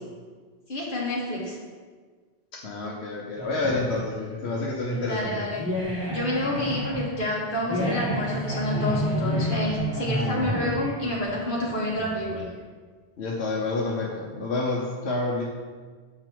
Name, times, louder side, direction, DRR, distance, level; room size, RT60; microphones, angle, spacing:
voice 1, 0.7-1.6 4.9-5.6 6.1-12.4, left 1 dB, 55° left, -4 dB, 1.5 m, -28 dB
voice 2, 2.5-5.4 13.2-15.4, left 2 dB, 80° left, -2 dB, 1.0 m, -29 dB
sound 1, 3.4-12.4, equal, 5° right, 1.6 m, -30 dB
6.6 x 3.8 x 4.5 m, 1.5 s
omnidirectional pair, 1.1 m